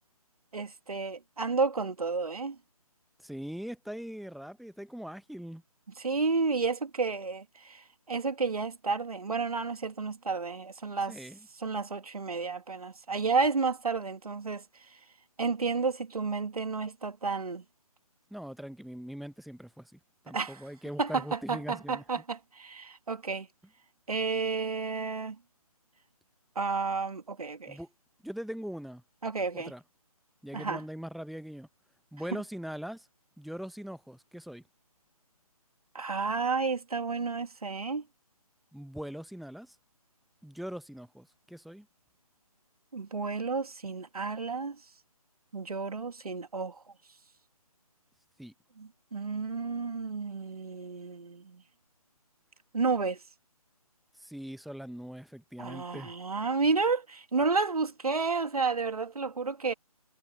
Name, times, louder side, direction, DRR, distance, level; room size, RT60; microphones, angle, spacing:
voice 1, 0.5-2.6 6.0-11.2 11.6-14.6 15.4-17.6 20.3-20.6 21.0-23.5 24.1-25.4 26.6-27.8 29.2-29.7 30.5-30.8 35.9-38.0 42.9-44.8 45.5-46.8 48.8-51.6 52.7-53.2 55.6-59.7, right 4 dB, 70° right, 2.3 m, -31 dB
voice 2, 3.2-5.6 11.1-11.5 18.3-20.0 20.2-22.0 27.7-27.9 28.2-29.0 29.5-29.8 30.4-31.7 32.1-33.1 33.4-34.6 38.7-39.8 40.4-41.9 48.4-48.5 54.2-56.1, equal, ahead, 0.7 m, -41 dB
figure-of-eight pair, 150°, 20 cm